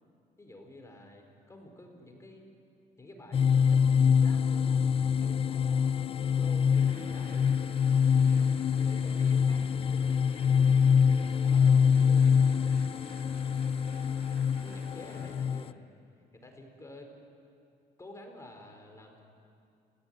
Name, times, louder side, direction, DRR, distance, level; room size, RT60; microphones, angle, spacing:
voice 1, 0.4-2.5 3.0-7.5 8.0-10.7 11.2-12.8 13.1-14.3 14.6-15.9 16.3-17.1 18.0-19.2, left 1 dB, 15° left, 3 dB, 4.7 m, -50 dB
sound 1, 3.3-15.7, left 7 dB, 35° left, 0.5 m, -25 dB
sound 2, 6.8-15.3, right 4 dB, 70° right, 4.7 m, -57 dB
30.0 x 16.5 x 9.2 m, 2.5 s
cardioid pair, 110°, 17 cm